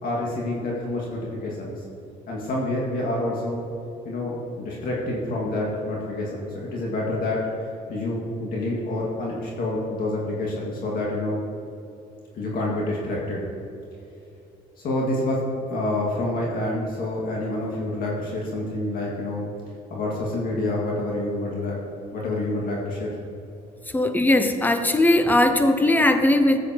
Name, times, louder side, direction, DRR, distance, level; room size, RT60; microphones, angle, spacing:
voice 1, 0.0-1.8 2.3-3.6 4.0-7.4 7.9-11.4 12.3-13.5 14.8-19.5 19.9-21.8 22.1-23.2, left 1 dB, 60° left, -4 dB, 1.9 m, -27 dB
voice 2, 23.9-26.6, left 1 dB, 10° left, 7 dB, 0.7 m, -19 dB
13.5 x 8.4 x 2.9 m, 2.7 s
cardioid pair, 110°, 17 cm